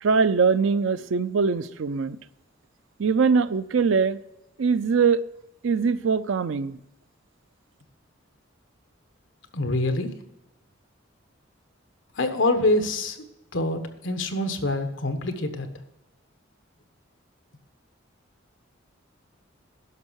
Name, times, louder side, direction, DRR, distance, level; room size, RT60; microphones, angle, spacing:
voice 1, 0.0-2.2 3.0-4.2 4.6-5.2 5.6-6.8, right 5 dB, 70° right, 0.5 m, -22 dB
voice 2, 9.5-10.1 12.2-13.2 13.5-15.7, left 2 dB, 65° left, 1.2 m, -25 dB
11.0 x 6.2 x 6.3 m
head